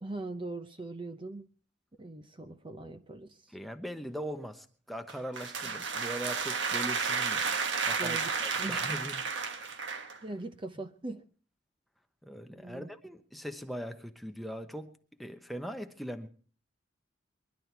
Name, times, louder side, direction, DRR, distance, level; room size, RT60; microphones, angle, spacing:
voice 1, 0.0-1.5 2.0-3.6 5.6-5.7 8.0-8.8 10.2-11.2 12.5-12.9, right 2 dB, 25° right, 0.7 m, -41 dB
voice 2, 3.5-7.4 7.8-8.2 8.4-9.2 12.2-14.9 15.2-16.3, equal, ahead, 0.9 m, -40 dB
sound 1, 5.1-10.2, right 5 dB, 80° right, 1.3 m, -32 dB
22.5 x 11.5 x 4.6 m
head